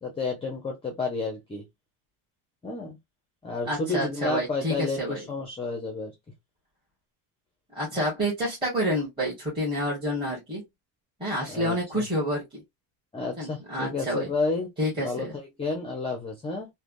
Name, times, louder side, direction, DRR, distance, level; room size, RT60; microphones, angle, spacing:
voice 1, 0.0-1.6 2.6-3.0 3.4-6.1 11.5-12.0 13.1-16.7, left 3 dB, 10° left, 0.6 m, -31 dB
voice 2, 3.7-5.2 7.7-10.6 11.2-12.6 13.4-14.3 14.8-15.3, equal, 10° right, 1.4 m, -28 dB
3.3 x 2.2 x 2.5 m
cardioid pair, 160°, 48 cm